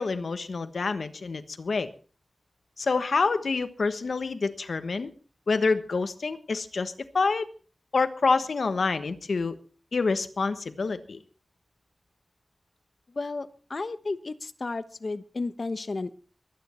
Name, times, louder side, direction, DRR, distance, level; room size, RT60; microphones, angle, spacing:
voice 1, 0.0-1.9 2.8-5.1 5.5-7.5 7.9-9.5 9.9-11.2, left 4 dB, 90° left, 10 dB, 1.2 m, -27 dB
voice 2, 13.1-16.2, left 3 dB, 55° left, 12 dB, 1.1 m, -33 dB
24.0 x 9.7 x 4.4 m, 0.38 s
wide cardioid pair, 75°, 0 cm